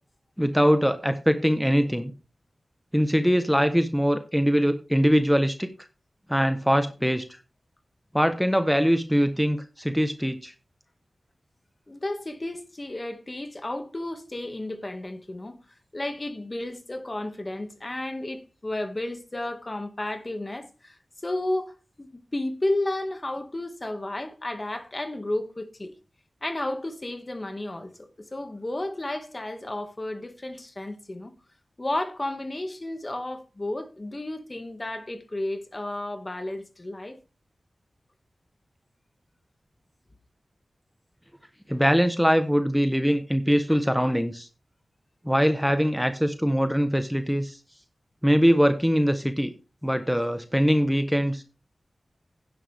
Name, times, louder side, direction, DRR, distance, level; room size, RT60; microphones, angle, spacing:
voice 1, 0.4-2.1 2.9-5.7 6.3-7.2 8.1-10.5 41.7-44.5 45.2-47.6 48.2-49.5 49.8-51.4, equal, ahead, 1.1 m, -22 dB
voice 2, 11.9-15.6 15.9-25.9 26.4-31.3 31.8-37.2, left 1 dB, 35° left, 1.9 m, -32 dB
11.0 x 10.0 x 3.5 m
cardioid pair, 55°, 0 cm